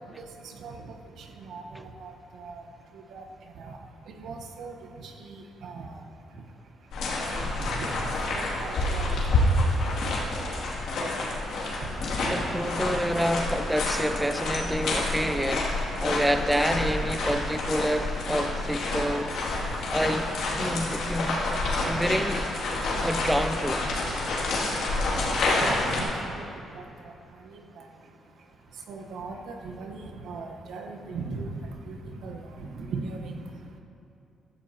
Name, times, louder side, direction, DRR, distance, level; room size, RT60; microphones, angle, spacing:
voice 1, 0.2-0.9 1.4-2.6 2.9-3.2 3.6-3.8 4.1-6.0 7.3-9.6 11.8-11.9 12.2-12.5 21.8-21.9 25.2-26.1 26.3-26.4 26.7-27.1 27.4-27.8 28.9-31.6 31.9-33.4, right 3 dB, 80° right, 2 dB, 1.2 m, -39 dB
sound 1, 6.9-26.0, left 2 dB, 75° left, 2.6 m, -28 dB
voice 2, 12.3-15.7 16.0-19.3 19.9-20.3 20.6-21.4 21.8-22.5 23.0-23.8, equal, 5° right, 9 dB, 0.5 m, -27 dB
15.0 x 12.5 x 2.9 m, 2.7 s
cardioid pair, 90°, 0 cm